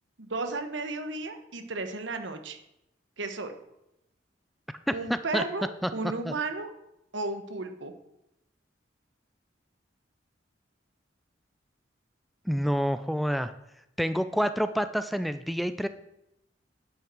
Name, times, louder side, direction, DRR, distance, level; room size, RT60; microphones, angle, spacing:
voice 1, 0.2-2.6 3.2-3.5 4.9-6.7 7.1-7.9, right 3 dB, 80° right, 7 dB, 1.2 m, -34 dB
voice 2, 5.1-5.4 5.8-5.9 6.2-6.3 12.5-13.5 14.0-15.9, equal, ahead, 11 dB, 0.3 m, -28 dB
10.5 x 5.8 x 6.1 m, 0.85 s
head